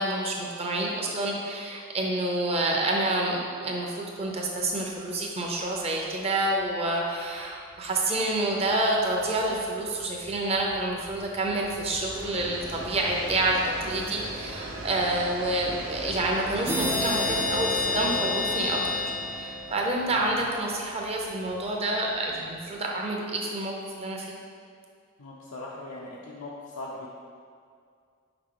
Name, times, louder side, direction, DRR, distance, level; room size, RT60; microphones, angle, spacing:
voice 1, 0.0-18.8 19.3-24.4, right 2 dB, 30° right, -1 dB, 0.7 m, -28 dB
Train, 4.6-4.8 5.1-5.2 5.5-22.9, right 1 dB, 80° right, 1.1 m, -41 dB
sound 1, 16.7-20.2, left 2 dB, 10° right, 0.3 m, -29 dB
voice 2, 20.1-20.4 25.2-27.2, left 2 dB, 80° left, -5 dB, 0.6 m, -40 dB
5.2 x 4.9 x 3.8 m, 2.2 s
head